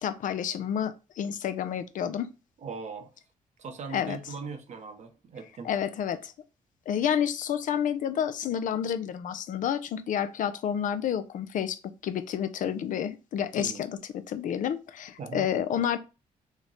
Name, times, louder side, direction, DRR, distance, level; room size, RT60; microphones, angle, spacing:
voice 1, 0.0-2.3 3.9-4.2 5.6-6.3 6.9-14.0 14.3-16.0, left 9 dB, 65° left, 0.4 m, -29 dB
voice 2, 2.6-3.1 3.6-5.7 13.6-13.9 15.2-15.5, right 4 dB, 55° right, 0.7 m, -39 dB
3.1 x 2.1 x 3.8 m
cardioid pair, 70°, 14 cm